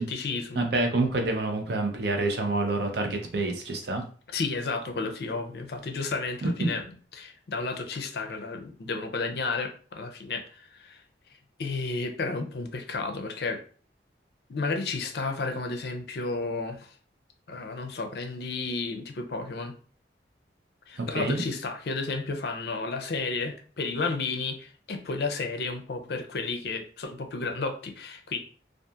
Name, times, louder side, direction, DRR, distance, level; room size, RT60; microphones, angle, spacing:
voice 1, 0.0-0.8 4.3-6.8 7.1-11.0 11.6-13.6 14.5-16.9 17.5-19.7 20.9-28.4, left 3 dB, 60° left, 5 dB, 0.4 m, -32 dB
voice 2, 0.6-4.0 6.4-6.7 21.0-21.4, right 2 dB, 65° right, 4 dB, 0.6 m, -27 dB
2.7 x 2.4 x 2.3 m, 0.42 s
head